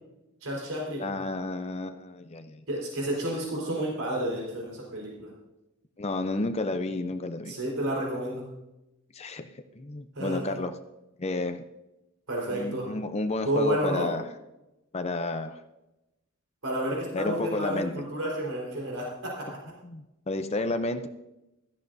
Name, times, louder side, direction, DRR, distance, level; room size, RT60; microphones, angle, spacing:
voice 1, 0.4-1.1 2.7-5.3 7.5-8.4 10.1-10.6 12.3-12.9 13.4-14.1 16.6-19.5, right 1 dB, 80° right, -3 dB, 4.3 m, -31 dB
voice 2, 1.0-2.6 6.0-7.5 9.1-10.8 11.2-11.6 12.5-14.2 14.9-15.6 17.1-18.0 19.8-21.1, left 2 dB, 30° left, 8 dB, 0.6 m, -31 dB
16.0 x 13.5 x 2.7 m, 0.95 s
head